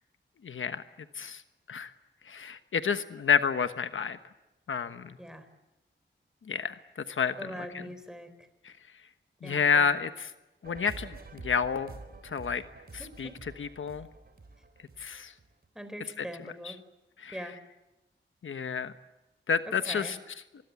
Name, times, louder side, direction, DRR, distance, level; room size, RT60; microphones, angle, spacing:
voice 1, 0.4-0.8 1.2-1.4 1.7-1.9 2.3-4.2 4.7-5.1 6.5-6.8 7.1-7.3 8.6-8.7 9.4-10.3 10.6-11.9 12.2-12.6 13.2-13.3 13.6-14.1 15.0-15.3 17.2-17.3 18.4-18.9 19.5-20.2, left 6 dB, 80° left, 10 dB, 1.2 m, -29 dB
voice 2, 7.4-8.5 9.4-10.0 13.0-13.4 15.7-16.8 17.3-17.6 19.7-20.1, equal, 5° right, 9 dB, 4.1 m, -42 dB
sound 1, 10.6-15.7, right 3 dB, 50° right, 3.9 m, -48 dB
27.0 x 21.0 x 8.3 m, 1.0 s
wide cardioid pair, 110°, 20 cm